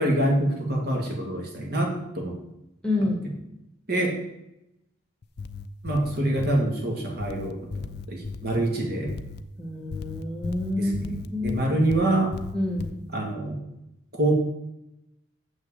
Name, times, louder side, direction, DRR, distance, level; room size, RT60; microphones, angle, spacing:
voice 1, 0.0-2.4 3.9-4.2 5.8-9.1 10.8-11.1 11.4-12.3 13.1-13.6 14.2-14.3, right 1 dB, 50° right, 1 dB, 2.2 m, -25 dB
voice 2, 2.8-3.2 9.6-11.7 12.5-13.0, left 2 dB, 5° left, 1 dB, 1.3 m, -28 dB
sound 1, 5.2-6.6 7.2-8.6 9.1-9.4 9.9-12.0 12.3-12.9, left 4 dB, 50° left, 0.5 m, -36 dB
7.2 x 6.3 x 7.3 m, 0.87 s
head